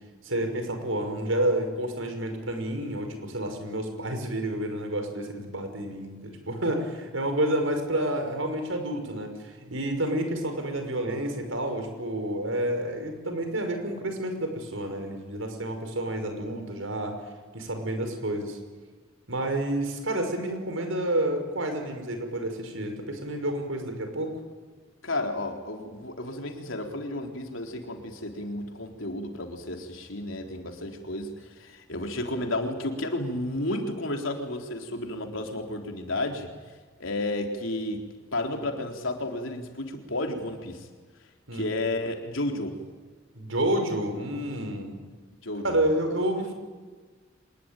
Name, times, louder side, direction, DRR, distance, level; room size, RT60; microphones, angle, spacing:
voice 1, 0.2-17.2 17.5-18.6 19.3-24.4 41.5-41.7 43.3-45.0 45.6-46.5, right 1 dB, 80° right, 6 dB, 5.7 m, -29 dB
voice 2, 25.0-36.5 37.0-40.9 41.5-42.8 45.4-45.8, left 1 dB, 80° left, 3 dB, 3.8 m, -32 dB
25.5 x 21.0 x 9.1 m, 1.4 s
head